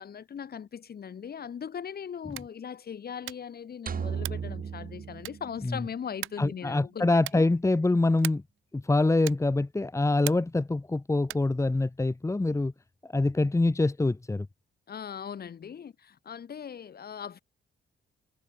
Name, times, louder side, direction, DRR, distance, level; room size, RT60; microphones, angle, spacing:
voice 1, 0.0-7.4 14.9-17.4, left 7 dB, 50° left, 4.6 m, -39 dB
sound 1, 2.2-2.6 3.2-3.6 4.2-4.5 5.2-5.6 6.2-6.5 7.2-7.5 8.2-8.6 9.2-9.6 10.2-10.6 11.2-11.6, right 16 dB, 90° right, 2.0 m, -40 dB
sound 2, 3.9-6.1, right 7 dB, 45° right, 3.9 m, -36 dB
voice 2, 6.4-8.4 8.7-12.7 13.1-14.5, left 2 dB, 15° left, 1.8 m, -25 dB
cardioid pair, 90°, 20 cm